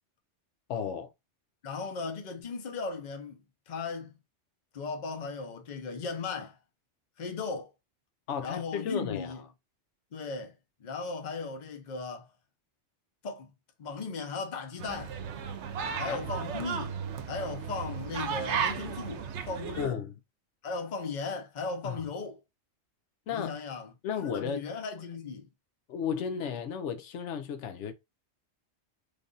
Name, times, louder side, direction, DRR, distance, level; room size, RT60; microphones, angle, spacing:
voice 1, 0.7-1.1 8.3-9.4 15.8-16.2 19.8-20.1 21.8-22.0 23.3-23.5 24.0-24.6 25.9-27.9, left 7 dB, 80° left, 0.9 m, -34 dB
voice 2, 1.6-3.4 3.7-4.2 4.7-6.6 7.2-7.7 8.4-9.4 10.1-12.3 13.2-13.5 13.8-15.2 16.0-17.0 17.3-20.0 20.6-22.4 23.3-23.9 24.2-25.5, left 4 dB, 45° left, 0.8 m, -37 dB
sound 1, 14.8-19.9, right 7 dB, 75° right, 0.9 m, -35 dB
3.3 x 2.4 x 3.8 m
omnidirectional pair, 1.2 m